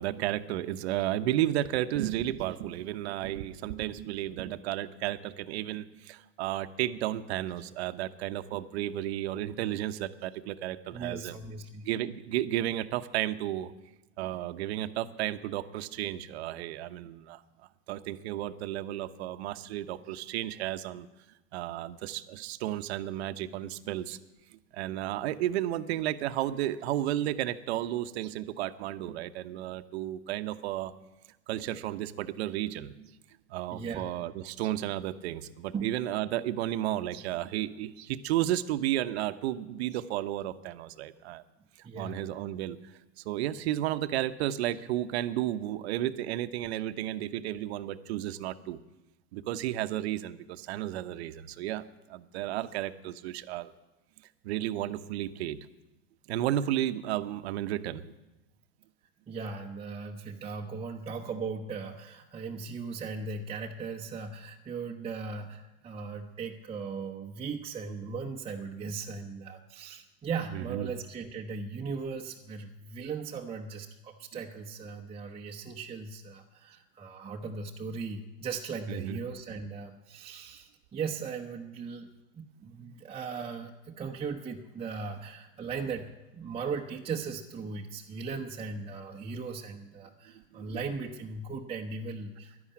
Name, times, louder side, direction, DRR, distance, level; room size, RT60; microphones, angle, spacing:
voice 1, 0.0-11.4 11.8-13.7 14.2-17.4 17.9-21.1 21.5-24.2 24.5-30.9 31.5-33.1 33.5-41.4 42.0-42.8 43.2-48.8 49.3-51.8 52.1-53.7 54.4-55.6 56.3-58.0 70.5-70.9 78.9-79.2 90.5-90.7, right 13 dB, 70° right, 11 dB, 0.9 m, -33 dB
voice 2, 10.9-11.9 16.6-16.7 33.7-34.1 35.7-35.9 41.8-42.2 59.3-82.1 82.3-92.7, right 5 dB, 15° right, 0 dB, 0.9 m, -38 dB
11.5 x 11.0 x 8.6 m, 1.0 s
supercardioid pair, 115°, 33 cm